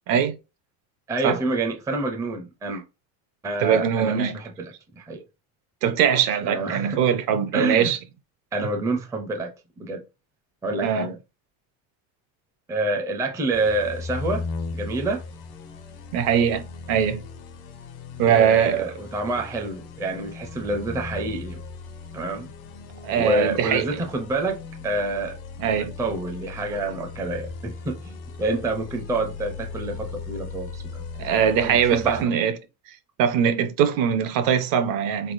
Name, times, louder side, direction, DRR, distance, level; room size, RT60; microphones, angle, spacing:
voice 1, 1.1-2.8 3.4-5.2 6.4-7.0 7.5-7.9 8.5-10.0 10.6-11.2 12.7-14.5 14.7-15.2 18.2-21.6 22.1-22.5 23.1-25.4 25.7-31.3 31.6-32.3, right 2 dB, 10° right, 0.4 m, -28 dB
voice 2, 3.6-4.4 5.8-8.0 10.8-11.1 16.1-17.2 18.2-18.9 23.0-23.9 25.6-25.9 31.2-32.6 33.2-35.3, right 8 dB, 55° right, 0.8 m, -21 dB
sound 1, 13.5-32.2, left 4 dB, 85° left, 1.3 m, -37 dB
4.1 x 3.5 x 2.5 m
cardioid pair, 145°, 40 cm